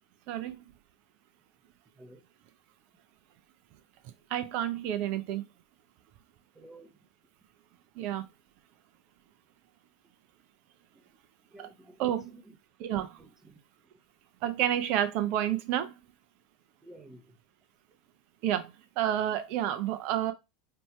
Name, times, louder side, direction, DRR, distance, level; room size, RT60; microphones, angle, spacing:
voice 1, 0.3-0.6 4.3-5.4 7.9-8.2 11.6-11.7 12.0-12.3 12.8-13.2 14.4-15.9 18.4-20.3, right 11 dB, 50° right, 0.8 m, -30 dB
voice 2, 6.6-6.9 11.5-12.1 12.9-13.6 16.8-17.2, right 1 dB, 15° right, 0.9 m, -52 dB
4.4 x 2.9 x 3.2 m
hypercardioid pair, 90°, 3 cm